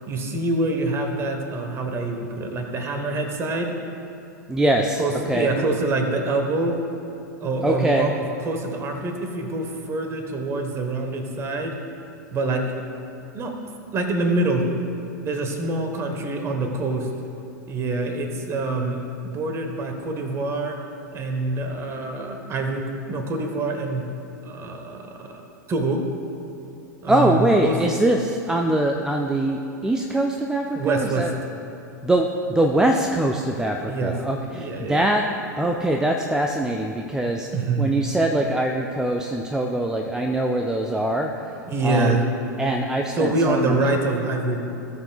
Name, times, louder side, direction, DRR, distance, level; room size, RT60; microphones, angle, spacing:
voice 1, 0.1-3.7 5.0-6.8 7.4-11.8 12.3-12.6 13.3-13.5 13.9-14.7 15.2-17.1 17.7-20.8 21.1-24.0 24.4-25.4 25.7-26.0 27.0-27.8 30.7-31.3 33.9-34.1 34.5-35.1 37.5-37.9 41.7-42.2 43.1-44.6, right 2 dB, 25° right, 4 dB, 1.3 m, -25 dB
voice 2, 4.5-5.5 7.6-8.1 27.1-31.3 32.0-37.5 37.8-41.3 41.8-42.2 42.6-43.7, right 1 dB, 5° right, 2 dB, 0.5 m, -23 dB
17.5 x 6.7 x 2.4 m, 2.9 s
figure-of-eight pair, 90°, 10 cm